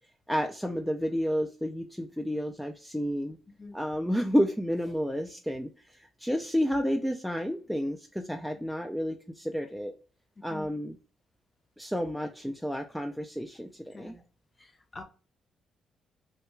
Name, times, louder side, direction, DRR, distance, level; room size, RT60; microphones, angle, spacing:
voice 1, 0.3-3.4 3.7-9.9 10.4-11.0 11.8-14.1, equal, ahead, 0.3 m, -31 dB
voice 2, 13.9-14.2 14.6-15.0, left 3 dB, 30° left, 0.7 m, -45 dB
3.3 x 2.2 x 3.0 m
cardioid pair, 90°, 0 cm